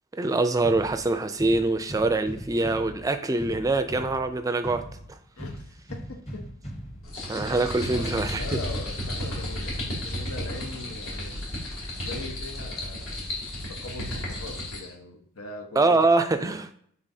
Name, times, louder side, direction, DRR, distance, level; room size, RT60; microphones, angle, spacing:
voice 1, 0.1-4.8 7.3-8.4 15.8-16.8, right 2 dB, 15° right, 0.4 m, -24 dB
sound 1, 0.6-8.6, equal, 30° left, 1.0 m, -40 dB
voice 2, 5.4-6.5 7.9-11.4 12.0-13.2 13.7-16.0 16.4-16.5, left 3 dB, 90° left, 1.1 m, -41 dB
sound 2, 7.0-14.9, left 1 dB, 70° left, 2.4 m, -33 dB
9.7 x 3.9 x 2.7 m
head